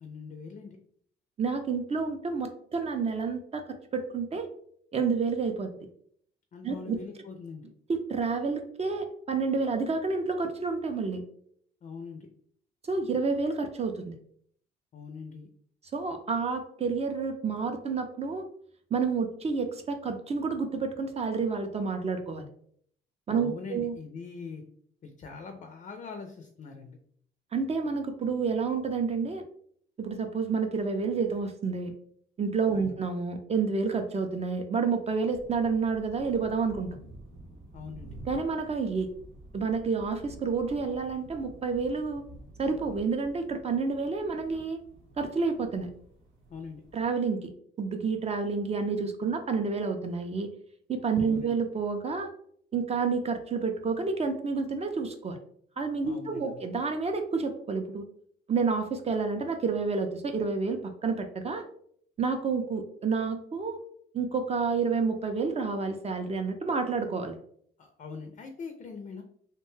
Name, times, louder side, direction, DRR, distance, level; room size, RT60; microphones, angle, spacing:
voice 1, 0.0-0.8 6.5-7.6 11.8-12.3 14.9-15.5 23.3-24.6 25.0-27.0 32.7-33.0 37.7-38.1 46.5-46.8 51.2-51.5 56.0-56.6 67.8-69.2, left 4 dB, 40° left, 5 dB, 0.4 m, -42 dB
voice 2, 1.4-3.6 3.9-4.5 4.9-5.7 6.6-7.0 7.9-11.2 12.9-14.2 15.9-18.4 18.9-22.5 23.3-24.0 27.5-29.4 30.0-31.9 32.4-37.0 38.3-39.1 39.5-42.2 42.6-44.8 45.2-45.9 46.9-47.5 47.8-50.5 50.9-52.3 52.7-55.4 55.8-58.0 58.5-61.6 62.2-63.8 64.1-67.4, right 4 dB, 30° right, 6 dB, 0.4 m, -29 dB
sound 1, 35.3-47.1, right 1 dB, 90° right, 0.8 m, -50 dB
2.7 x 2.2 x 3.1 m, 0.63 s
cardioid pair, 90°, 20 cm